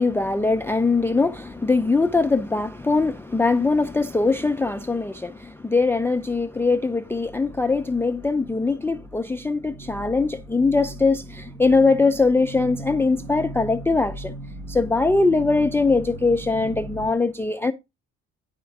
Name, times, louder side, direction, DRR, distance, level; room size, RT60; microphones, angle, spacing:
voice 1, 0.0-14.3 14.7-17.7, left 3 dB, 10° left, 0.4 m, -21 dB
sound 1, 4.7-4.8 5.0-5.9 6.2-17.1, right 2 dB, 60° right, 1.0 m, -39 dB
10.5 x 3.6 x 4.6 m
cardioid pair, 90°, 30 cm